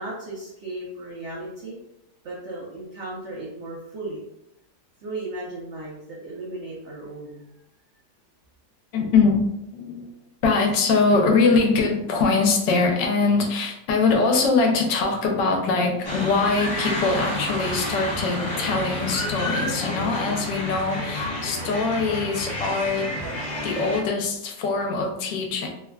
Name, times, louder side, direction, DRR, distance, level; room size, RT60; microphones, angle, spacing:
voice 1, 0.0-1.8 2.2-4.2 5.0-7.5, right 2 dB, 60° right, -5 dB, 0.7 m, -35 dB
voice 2, 8.9-9.4 9.7-10.1 10.4-23.1 23.6-25.7, left 4 dB, 85° left, 3 dB, 1.3 m, -22 dB
sound 1, 16.0-24.0, left 1 dB, 50° left, 0.5 m, -30 dB
3.3 x 2.4 x 2.2 m, 0.84 s
omnidirectional pair, 1.9 m